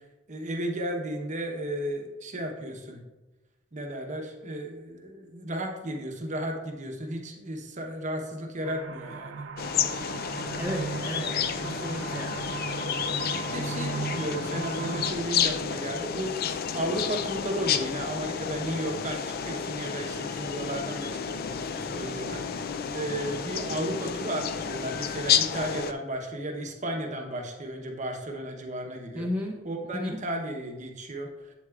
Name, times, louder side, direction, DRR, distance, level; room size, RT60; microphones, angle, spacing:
voice 1, 0.3-3.0 3.7-9.4 13.2-29.3 29.6-31.5, right 1 dB, 40° right, 3 dB, 0.9 m, -34 dB
sound 1, 8.6-15.1, right 4 dB, 75° right, 0.4 m, -36 dB
sound 2, 9.6-25.9, left 7 dB, 50° left, 0.4 m, -31 dB
voice 2, 10.5-11.4 11.6-12.3 13.5-13.7 29.2-29.6 29.9-30.1, left 1 dB, 5° right, -2 dB, 0.6 m, -33 dB
8.0 x 7.6 x 2.4 m, 1.1 s
head